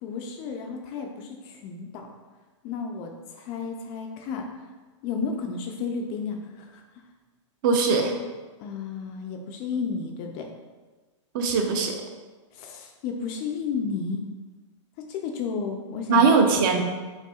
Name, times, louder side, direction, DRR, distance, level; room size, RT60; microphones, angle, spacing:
voice 1, 0.0-2.1 2.6-4.5 5.0-6.8 8.6-10.5 12.5-14.2 15.0-16.3, left 5 dB, 30° left, 3 dB, 0.3 m, -32 dB
voice 2, 7.6-8.1 11.3-12.0 16.1-16.8, right 4 dB, 40° right, 4 dB, 0.6 m, -20 dB
5.5 x 3.4 x 2.3 m, 1.3 s
hypercardioid pair, 150°, 16 cm